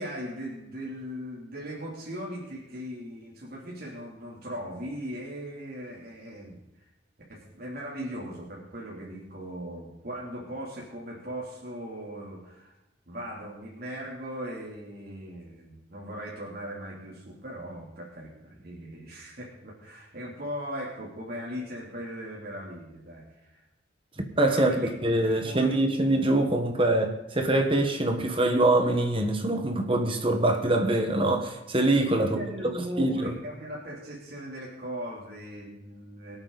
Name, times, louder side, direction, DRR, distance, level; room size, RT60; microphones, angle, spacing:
voice 1, 0.0-6.9 7.3-12.7 13.1-23.6 24.5-24.9 25.4-25.8 32.2-36.4, equal, 55° right, -4 dB, 3.2 m, -38 dB
voice 2, 24.4-32.4 33.0-33.3, right 1 dB, 30° right, 5 dB, 1.3 m, -24 dB
24.0 x 8.8 x 4.1 m, 0.95 s
head